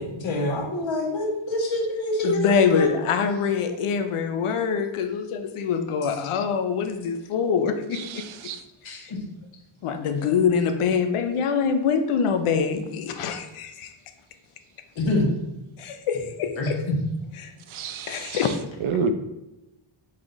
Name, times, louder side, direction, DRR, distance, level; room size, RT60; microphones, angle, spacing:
voice 1, 0.0-2.9 8.8-9.2 15.0-15.3 16.6-16.7, left 1 dB, 65° left, 0 dB, 1.1 m, -26 dB
voice 2, 2.2-8.2 9.8-13.9 15.8-16.8 17.4-17.5 18.1-18.6, left 6 dB, 90° left, 8 dB, 0.6 m, -24 dB
voice 3, 7.9-8.6 17.7-18.5 18.8-19.1, right 5 dB, 75° right, 9 dB, 0.5 m, -29 dB
3.6 x 3.2 x 3.9 m, 0.96 s
wide cardioid pair, 155°, 49 cm